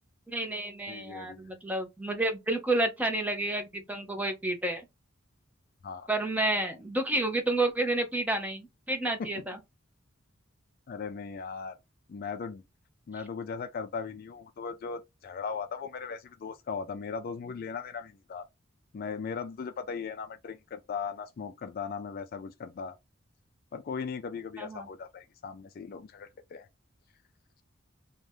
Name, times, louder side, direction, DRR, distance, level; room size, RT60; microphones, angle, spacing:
voice 1, 0.3-4.9 6.1-9.6 24.6-24.9, right 2 dB, 10° right, 0.6 m, -30 dB
voice 2, 0.9-1.5 5.8-6.1 9.2-9.4 10.9-11.8 12.1-12.6 13.1-18.4 18.9-23.0 23.7-26.7, left 5 dB, 45° left, 0.3 m, -38 dB
2.6 x 2.2 x 3.2 m
head